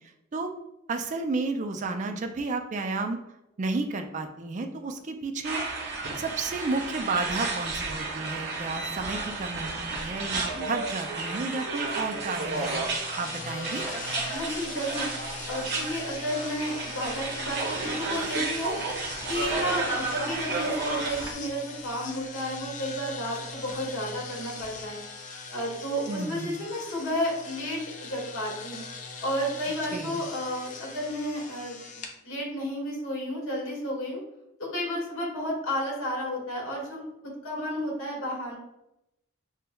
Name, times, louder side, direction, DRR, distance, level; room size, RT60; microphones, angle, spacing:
voice 1, 0.9-3.2 3.6-5.6 5.9-13.8 26.1-26.6 29.9-30.2, right 3 dB, 35° right, 5 dB, 0.3 m, -32 dB
sound 1, 5.4-21.3, right 3 dB, 50° right, 0.8 m, -32 dB
sound 2, 12.5-32.1, left 4 dB, 35° left, 0.4 m, -41 dB
voice 2, 14.3-15.1 15.5-18.7 19.3-25.0 25.5-28.8 29.2-34.2 34.6-38.6, equal, 75° left, -3 dB, 1.5 m, -32 dB
5.9 x 2.2 x 2.2 m, 0.88 s
head